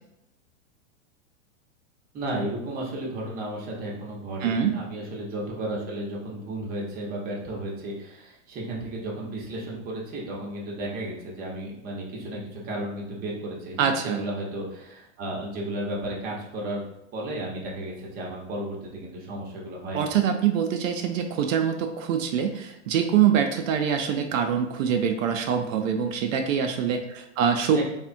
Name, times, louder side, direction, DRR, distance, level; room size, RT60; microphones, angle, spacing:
voice 1, 2.1-16.8 17.1-20.1 27.7-27.8, right 1 dB, 25° right, -3 dB, 0.7 m, -33 dB
voice 2, 4.4-4.7 13.8-14.2 19.9-27.8, right 8 dB, 75° right, 5 dB, 0.5 m, -24 dB
3.5 x 2.1 x 2.5 m, 0.83 s
hypercardioid pair, 135°, 39 cm